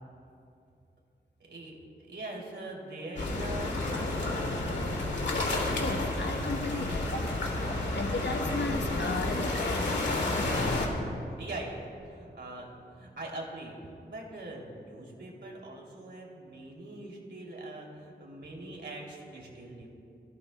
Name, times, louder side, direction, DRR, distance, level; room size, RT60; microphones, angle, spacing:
voice 1, 1.4-4.2 6.7-7.0 11.3-19.9, right 2 dB, 75° right, -2 dB, 2.9 m, -42 dB
sound 1, 3.2-10.9, left 2 dB, 90° left, 2.2 m, -30 dB
voice 2, 5.6-10.8, left 3 dB, 75° left, 4 dB, 1.1 m, -36 dB
24.0 x 16.0 x 2.2 m, 2.5 s
wide cardioid pair, 105°, 18 cm